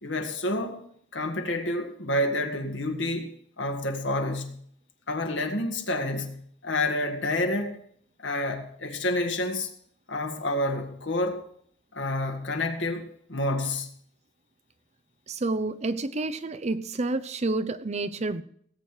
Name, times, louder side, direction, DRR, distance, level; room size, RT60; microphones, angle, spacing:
voice 1, 0.0-0.9 1.1-4.6 5.1-7.8 8.2-9.7 10.1-11.4 11.9-13.9, left 1 dB, 90° left, 1.9 m, -29 dB
voice 2, 15.3-18.4, right 2 dB, 40° right, 0.7 m, -29 dB
17.5 x 8.1 x 4.9 m
head